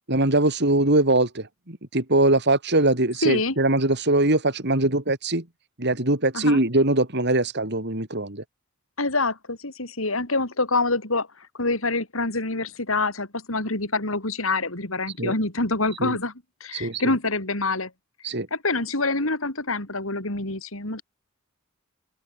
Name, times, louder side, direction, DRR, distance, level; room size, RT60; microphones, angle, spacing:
voice 1, 0.1-5.5 5.8-8.4 15.2-15.3 16.0-16.2 16.7-17.2 18.2-18.5, right 2 dB, 55° right, 4.2 m, -22 dB
voice 2, 3.2-3.5 6.3-6.6 9.0-11.3 11.6-16.3 16.6-17.9 18.5-21.0, left 3 dB, 75° left, 4.7 m, -26 dB
head